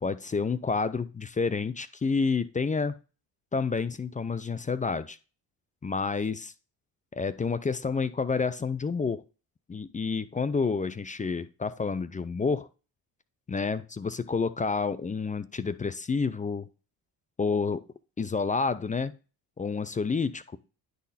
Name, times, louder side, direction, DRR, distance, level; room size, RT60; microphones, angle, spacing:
voice 1, 0.0-3.0 3.5-5.2 5.8-6.5 7.1-9.2 9.7-12.7 13.5-16.7 17.4-17.8 18.2-19.1 19.6-20.6, left 4 dB, 20° left, 14 dB, 0.4 m, -29 dB
9.7 x 4.0 x 4.1 m, 0.34 s
supercardioid pair, 80°, 42 cm